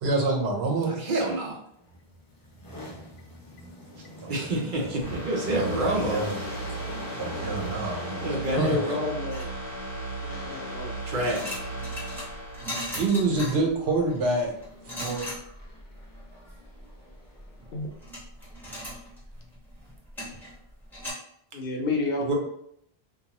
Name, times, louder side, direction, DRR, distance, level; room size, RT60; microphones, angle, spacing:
voice 1, 0.0-0.9 4.0-4.3 5.1-5.2 5.5-6.4 7.1-8.3 8.6-8.8 12.9-14.5 14.8-15.3, right 3 dB, 90° right, 1 dB, 0.9 m, -27 dB
voice 2, 0.8-1.6 4.3-6.3 7.9-9.1 11.0-11.6 22.2-22.3, right 1 dB, 55° right, -1 dB, 0.8 m, -28 dB
sound 1, 1.8-9.4 10.3-11.1 14.3-15.1 15.6-17.9, left 1 dB, 30° left, 0.4 m, -43 dB
sound 2, 5.0-13.7 14.0-14.1, right 2 dB, 40° right, 1.2 m, -36 dB
voice 3, 8.5-9.5 10.2-10.9 17.7-17.9 21.5-22.3, left 3 dB, 65° left, 1 dB, 0.7 m, -30 dB
sound 3, 9.3-10.1 10.8-21.1, left 1 dB, ahead, 0.9 m, -39 dB
2.6 x 2.3 x 2.8 m, 0.71 s
omnidirectional pair, 1.0 m